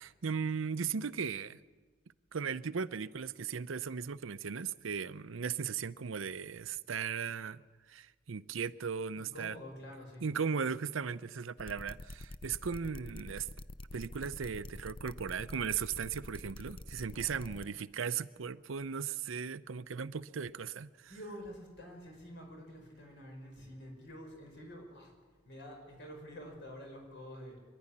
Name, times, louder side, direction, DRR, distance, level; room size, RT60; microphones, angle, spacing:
voice 1, 0.0-1.6 2.3-7.6 7.9-9.6 10.2-13.5 13.9-20.9, right 6 dB, 85° right, 0.6 m, -37 dB
voice 2, 9.2-10.2 17.1-17.7 21.0-25.1 25.4-27.6, equal, 60° left, 5.7 m, -48 dB
sound 1, 11.6-17.7, left 2 dB, 25° left, 0.5 m, -46 dB
25.0 x 12.0 x 9.9 m
head